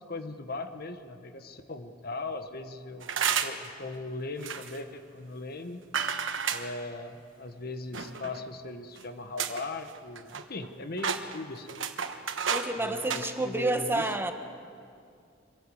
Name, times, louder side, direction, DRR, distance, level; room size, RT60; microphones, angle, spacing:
voice 1, 0.0-3.1 3.4-5.8 6.5-11.8 12.8-14.1, left 2 dB, 55° left, 8 dB, 1.2 m, -39 dB
sound 1, 3.0-3.7 4.4-4.8 5.9-6.7 7.9-8.4 9.0-9.1 9.4-9.7 10.0-10.7 11.0-12.7 13.0-13.3, right 7 dB, 85° right, 1.3 m, -31 dB
voice 2, 12.5-14.3, right 2 dB, 10° right, 6 dB, 1.2 m, -29 dB
24.0 x 16.5 x 7.9 m, 2.3 s
head